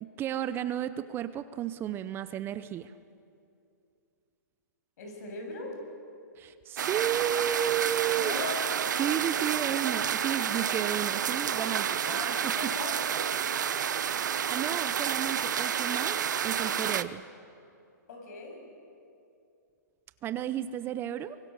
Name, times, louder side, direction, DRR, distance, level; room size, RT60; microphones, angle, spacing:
voice 1, 0.0-2.9 6.4-8.4 9.0-12.7 14.5-17.2 20.2-21.4, right 10 dB, 20° right, 13 dB, 0.6 m, -33 dB
voice 2, 5.0-5.7 8.2-8.6 12.0-13.2 18.1-18.6, left 3 dB, 60° left, 2 dB, 7.2 m, -39 dB
sound 1, 6.8-17.0, right 8 dB, 75° right, 0.9 m, -30 dB
24.0 x 23.0 x 6.6 m, 2.5 s
hypercardioid pair, 135°, 10 cm